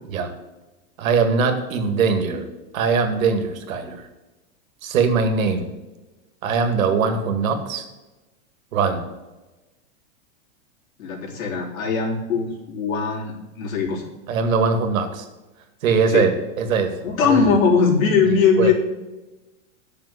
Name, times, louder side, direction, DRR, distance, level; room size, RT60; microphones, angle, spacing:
voice 1, 1.0-2.5 2.7-4.1 4.8-5.7 6.4-7.9 8.7-9.1 14.3-15.3 15.8-16.3 16.6-17.4 18.6-18.7, right 5 dB, 80° right, 7 dB, 2.1 m, -21 dB
voice 2, 11.0-14.0 16.1-16.3 17.0-18.7, left 5 dB, 90° left, -2 dB, 3.6 m, -20 dB
8.4 x 6.6 x 8.3 m, 1.1 s
supercardioid pair, 160°, 40 cm